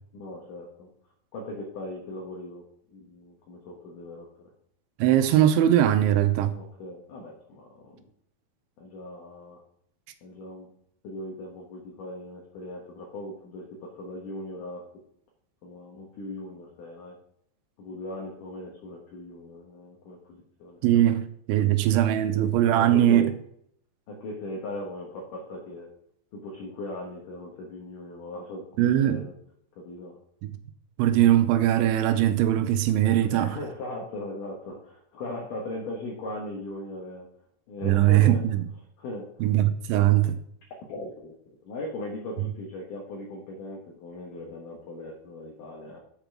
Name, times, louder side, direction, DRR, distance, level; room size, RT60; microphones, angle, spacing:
voice 1, 0.1-0.9 1.3-2.6 2.9-4.5 6.5-8.0 8.8-9.6 10.2-10.7 11.0-14.8 15.6-17.2 17.8-20.8 22.7-23.3 24.1-25.9 26.3-29.3 29.8-30.2 33.2-37.3 37.7-38.6 39.0-39.3 40.9-41.4 41.6-46.0, left 1 dB, 70° left, 2.1 m, -39 dB
voice 2, 5.0-6.5 20.8-23.3 28.8-29.2 31.0-33.6 37.8-38.4 39.4-40.4, right 12 dB, 80° right, 2.9 m, -21 dB
8.1 x 5.2 x 5.9 m
omnidirectional pair, 5.4 m